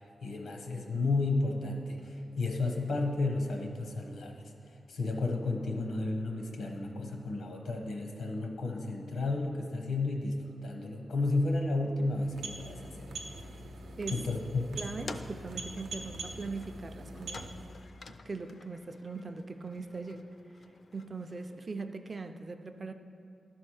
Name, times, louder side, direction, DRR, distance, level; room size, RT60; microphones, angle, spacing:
voice 1, 0.2-4.4 4.9-13.1 14.1-14.7, left 2 dB, 85° left, 2 dB, 0.9 m, -32 dB
sound 1, 12.1-17.9, right 2 dB, 90° right, 0.7 m, -43 dB
sound 2, 14.8-21.6, left 4 dB, 45° left, 0.3 m, -51 dB
voice 2, 14.8-17.6 18.2-20.3 20.9-22.9, right 3 dB, 30° right, 8 dB, 0.4 m, -40 dB
11.0 x 4.3 x 6.3 m, 2.6 s
wide cardioid pair, 175°, 0 cm